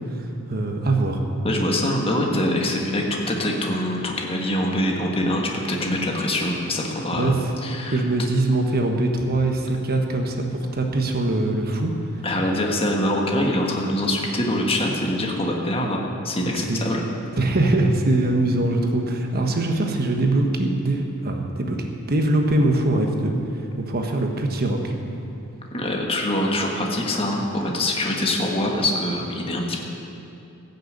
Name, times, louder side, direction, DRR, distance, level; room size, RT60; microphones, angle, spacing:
voice 1, 0.1-1.2 7.1-7.4 7.9-11.9 16.5-16.8 17.4-21.8 22.1-24.9, right 2 dB, 45° right, 3 dB, 1.2 m, -22 dB
voice 2, 1.4-7.3 7.6-8.0 12.2-17.0 25.7-29.8, left 1 dB, 25° left, 0 dB, 1.5 m, -24 dB
15.0 x 6.8 x 8.1 m, 2.7 s
head